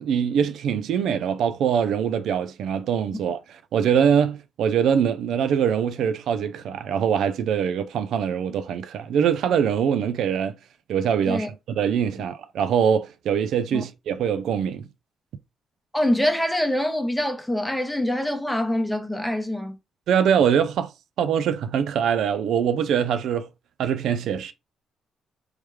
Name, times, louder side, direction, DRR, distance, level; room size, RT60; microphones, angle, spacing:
voice 1, 0.0-10.6 10.9-11.5 11.8-14.9 20.1-20.9 21.2-23.5 23.8-24.5, right 8 dB, 75° right, 0.4 m, -23 dB
voice 2, 15.9-19.8, left 1 dB, 5° left, 0.9 m, -25 dB
3.2 x 3.1 x 3.4 m
cardioid pair, 90°, 0 cm